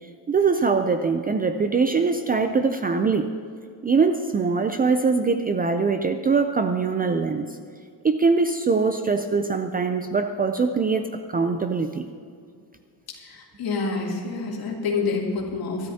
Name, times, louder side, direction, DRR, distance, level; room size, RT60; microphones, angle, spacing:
voice 1, 0.3-3.3 3.8-7.5 8.0-12.1, right 4 dB, 25° right, 7 dB, 0.4 m, -22 dB
voice 2, 13.1-15.9, left 4 dB, 60° left, -2 dB, 2.9 m, -28 dB
22.5 x 13.0 x 2.8 m, 2.2 s
cardioid pair, 160°, 41 cm